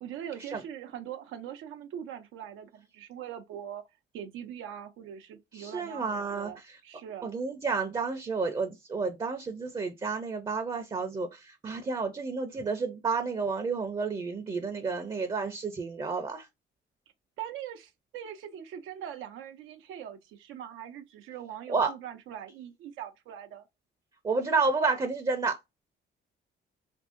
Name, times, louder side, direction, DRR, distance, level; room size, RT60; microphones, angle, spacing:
voice 1, 0.0-3.8 4.1-7.3 17.4-23.7, right 10 dB, 90° right, 0.5 m, -42 dB
voice 2, 5.5-6.8 7.2-16.5 21.7-21.9 24.2-25.6, right 4 dB, 25° right, 0.5 m, -31 dB
2.7 x 2.6 x 2.4 m
cardioid pair, 90°, 20 cm